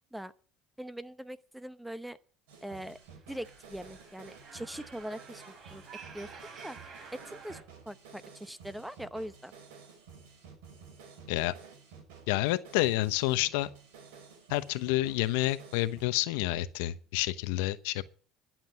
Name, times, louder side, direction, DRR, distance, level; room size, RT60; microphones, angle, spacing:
voice 1, 0.8-2.2 2.6-3.0 3.3-5.8 6.1-6.3 6.6-6.8 7.1-7.6 7.9-9.5, right 1 dB, 5° right, 0.9 m, -41 dB
sound 1, 2.5-16.0, right 6 dB, 90° right, 4.9 m, -52 dB
sound 2, 2.9-7.6, right 5 dB, 50° right, 6.7 m, -50 dB
voice 2, 12.3-13.7 14.5-18.0, left 17 dB, 85° left, 0.9 m, -29 dB
12.0 x 7.5 x 8.8 m
supercardioid pair, 110°, 0 cm